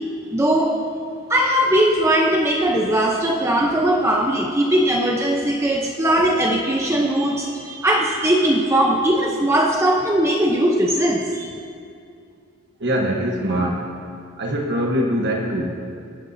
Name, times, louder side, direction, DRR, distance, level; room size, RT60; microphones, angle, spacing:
voice 1, 0.3-0.8 1.3-11.5, right 1 dB, 15° right, 0 dB, 0.8 m, -19 dB
voice 2, 12.8-13.9 14.4-15.7, equal, 55° right, 0 dB, 1.2 m, -22 dB
27.0 x 9.7 x 2.8 m, 2.5 s
head